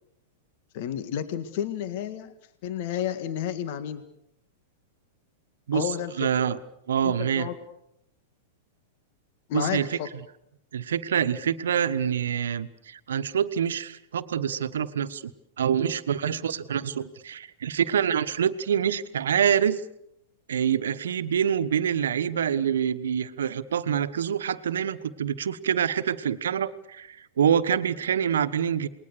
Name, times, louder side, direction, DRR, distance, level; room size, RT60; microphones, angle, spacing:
voice 1, 0.7-2.3 2.6-4.0 5.7-6.3 7.0-7.6 9.5-10.1, left 10 dB, 55° left, 11 dB, 1.9 m, -31 dB
voice 2, 6.2-6.6 6.9-7.5 9.5-10.0 10.7-15.3 15.6-19.8 20.5-28.9, right 8 dB, 70° right, 12 dB, 1.3 m, -26 dB
28.0 x 21.0 x 6.8 m, 0.80 s
figure-of-eight pair, 100°, 0 cm